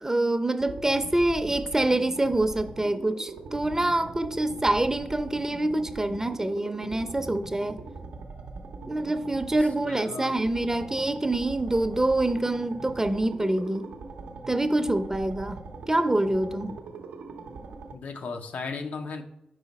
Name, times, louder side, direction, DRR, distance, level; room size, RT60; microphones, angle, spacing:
voice 1, 0.0-7.8 8.9-13.9 14.5-15.6 15.9-16.7, right 1 dB, 20° right, 0.5 m, -26 dB
sound 1, 0.6-17.9, right 3 dB, 80° right, 0.5 m, -41 dB
voice 2, 9.9-10.4 17.9-19.2, left 4 dB, 70° left, 0.6 m, -35 dB
5.0 x 4.8 x 4.1 m
supercardioid pair, 50°, 3 cm